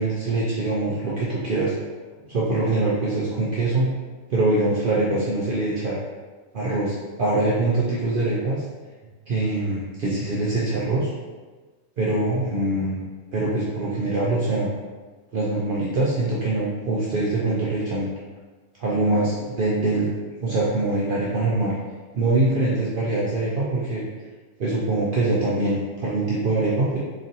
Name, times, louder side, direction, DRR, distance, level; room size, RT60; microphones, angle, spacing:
voice 1, 0.0-1.7 2.3-3.9 4.3-6.0 6.5-8.6 9.3-11.1 12.0-13.0 13.3-14.7 15.3-18.1 18.8-21.7 22.1-24.0 24.6-27.0, right 2 dB, 70° right, -7 dB, 0.5 m, -23 dB
3.0 x 2.5 x 2.7 m, 1.3 s
omnidirectional pair, 1.4 m